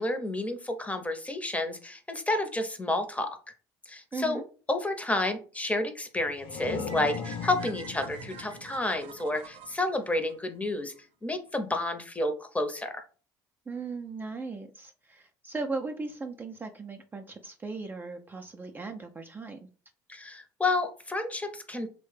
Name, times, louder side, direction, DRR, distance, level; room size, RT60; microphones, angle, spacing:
voice 1, 0.0-3.3 3.9-4.4 4.7-10.9 11.2-13.0 20.1-21.9, left 2 dB, 15° left, 6 dB, 0.7 m, -30 dB
voice 2, 4.1-4.4 13.7-19.7, right 3 dB, 20° right, 4 dB, 0.4 m, -37 dB
sound 1, 6.2-9.8, left 5 dB, 65° left, 0.5 m, -39 dB
sound 2, 6.9-11.0, right 6 dB, 65° right, 0.6 m, -48 dB
3.1 x 2.1 x 3.2 m, 0.37 s
hypercardioid pair, 70°, 10 cm